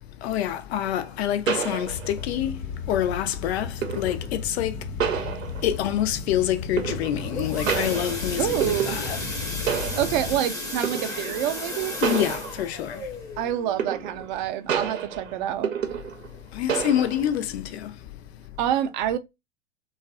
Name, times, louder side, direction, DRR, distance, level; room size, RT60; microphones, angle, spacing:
voice 1, 0.2-9.2 12.0-13.2 16.5-18.1, left 11 dB, 55° left, 0.5 m, -27 dB
sound 1, 0.9-1.0 1.5-2.4 3.8-4.3 5.0-5.9 6.8-7.4 7.7-9.3 9.7-10.4 10.8-11.3 12.0-12.9 13.8-14.4 14.7-16.4 16.7-17.3, right 7 dB, 85° right, 0.6 m, -29 dB
sound 2, 1.9-10.4, left 5 dB, 85° left, 1.0 m, -35 dB
sound 3, 7.0-15.6 16.1-16.3 16.6-16.7 17.2-17.3, left 2 dB, 10° left, 0.6 m, -35 dB
voice 2, 8.4-9.0 10.0-12.0 13.4-15.7 18.6-19.2, right 11 dB, 40° right, 0.4 m, -27 dB
2.5 x 2.3 x 2.2 m
hypercardioid pair, 100°, 38 cm